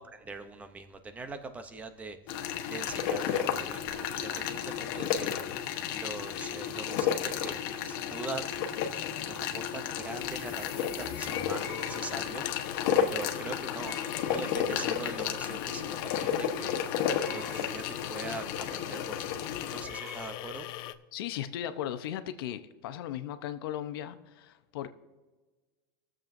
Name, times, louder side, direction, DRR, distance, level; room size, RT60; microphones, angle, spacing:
voice 1, 0.0-2.2 2.7-5.4 5.9-7.6 7.9-8.5 9.2-12.5 13.0-16.8 17.3-20.7, right 3 dB, 10° right, 9 dB, 0.6 m, -42 dB
sound 1, 2.3-19.8, left 9 dB, 60° left, 1.0 m, -32 dB
sound 2, 10.2-20.9, left 13 dB, 40° left, 0.4 m, -42 dB
sound 3, 11.6-12.5 13.9-14.8 17.2-17.9 19.9-20.4, left 1 dB, 40° right, 1.6 m, -46 dB
voice 2, 21.1-24.9, left 11 dB, 85° left, 10 dB, 0.7 m, -37 dB
22.0 x 7.4 x 2.6 m, 1.3 s
supercardioid pair, 165°, 12 cm